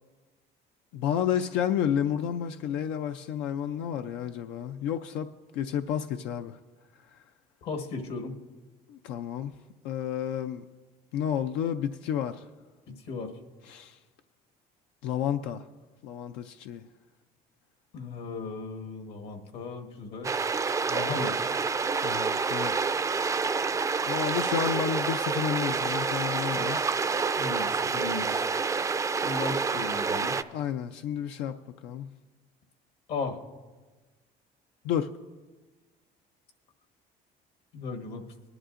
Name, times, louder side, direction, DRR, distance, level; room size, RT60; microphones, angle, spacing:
voice 1, 0.9-6.6 7.1-7.2 8.9-9.5 9.8-10.6 11.1-12.5 13.7-14.0 15.0-15.7 16.0-16.8 22.0-22.8 24.1-26.8 30.5-32.1 34.8-35.1, left 9 dB, 85° left, 0.5 m, -31 dB
voice 2, 7.6-8.4 12.9-13.3 17.9-20.3 20.9-21.3 26.3-26.7 27.3-28.4 29.2-30.4 33.1-33.4 37.7-38.2, left 4 dB, 70° left, 1.4 m, -36 dB
sound 1, 20.2-30.4, right 4 dB, 20° right, 0.4 m, -28 dB
19.5 x 11.0 x 2.5 m
cardioid pair, 110°, 18 cm